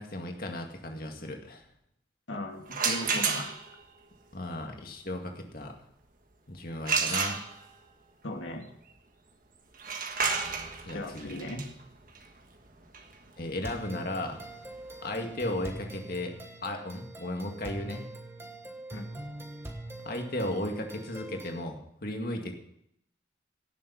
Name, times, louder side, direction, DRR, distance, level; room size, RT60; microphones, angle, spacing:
voice 1, 0.0-1.6 4.3-5.7 6.5-7.4 10.8-11.4 13.4-14.4 15.0-16.3 16.6-18.1 20.0-22.5, left 1 dB, 50° left, 3 dB, 2.1 m, -35 dB
voice 2, 2.3-3.6 8.2-8.6 10.9-11.7 18.9-19.1, left 1 dB, 80° left, 2 dB, 2.4 m, -37 dB
sound 1, 2.7-3.8 6.9-7.9 9.7-15.4, right 5 dB, 45° right, 1.5 m, -32 dB
sound 2, 13.6-21.6, right 2 dB, 15° right, 1.3 m, -43 dB
17.5 x 7.4 x 5.7 m, 0.73 s
head